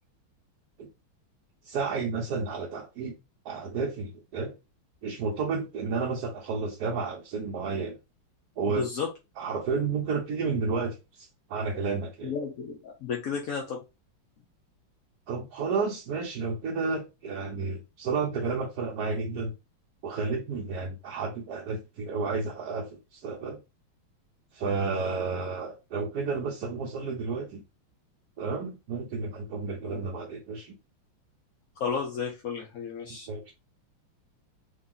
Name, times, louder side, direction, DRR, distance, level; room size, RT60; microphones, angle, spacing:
voice 1, 1.6-3.1 3.4-4.5 5.0-8.0 8.6-8.9 9.4-12.3 15.3-19.5 20.0-23.6 24.5-27.6 28.4-30.7 33.3-33.5, right 4 dB, 65° right, 1.0 m, -31 dB
voice 2, 8.7-9.1 12.2-13.8 29.9-30.1 31.8-33.3, left 6 dB, 65° left, 0.9 m, -32 dB
3.9 x 2.7 x 3.8 m
omnidirectional pair, 2.3 m